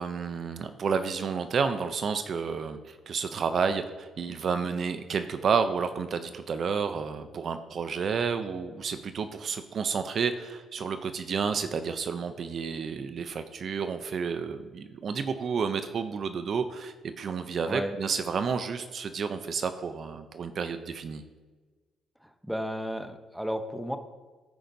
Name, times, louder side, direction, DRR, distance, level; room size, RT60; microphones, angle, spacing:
voice 1, 0.0-21.2, right 6 dB, 55° right, 10 dB, 0.5 m, -30 dB
voice 2, 22.2-24.0, equal, ahead, 8 dB, 0.7 m, -33 dB
14.0 x 5.0 x 2.7 m, 1.3 s
cardioid pair, 90°, 0 cm